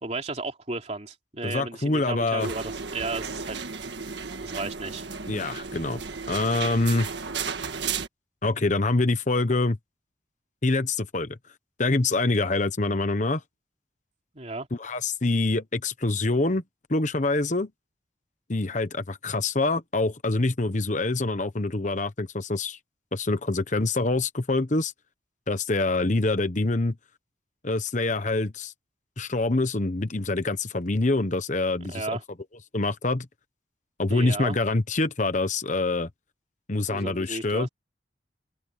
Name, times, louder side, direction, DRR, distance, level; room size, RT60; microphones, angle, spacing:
voice 1, 0.0-3.6 4.4-5.0 14.3-14.7 31.9-32.2 34.1-34.6 36.9-37.7, right 3 dB, 35° right, 3.0 m, -34 dB
voice 2, 1.4-2.5 5.3-6.0 6.3-7.1 8.4-9.8 10.6-11.4 11.8-13.4 14.8-16.6 16.9-17.7 18.5-22.8 23.1-24.9 25.5-27.0 27.6-28.7 29.2-32.1 32.7-33.3 34.0-36.1 36.7-37.7, left 2 dB, 40° left, 1.0 m, -25 dB
sound 1, 2.4-8.1, right 5 dB, 70° right, 1.6 m, -34 dB
open air
head